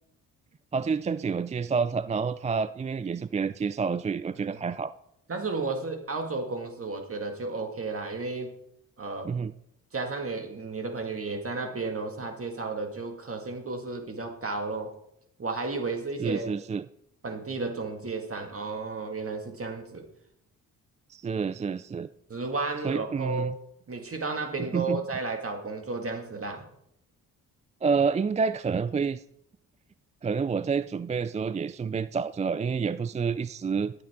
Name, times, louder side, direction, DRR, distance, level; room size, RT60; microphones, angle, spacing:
voice 1, 0.7-4.9 9.2-9.5 16.2-16.8 21.1-22.1 22.8-23.5 24.7-25.0 27.8-29.2 30.2-33.9, right 5 dB, 20° right, 15 dB, 0.3 m, -28 dB
voice 2, 5.3-8.5 9.0-9.3 9.9-14.9 15.4-16.6 17.2-20.1 22.3-23.6 23.9-26.7, right 3 dB, 40° right, 4 dB, 1.9 m, -33 dB
14.0 x 8.8 x 3.6 m, 0.75 s
supercardioid pair, 60°, 36 cm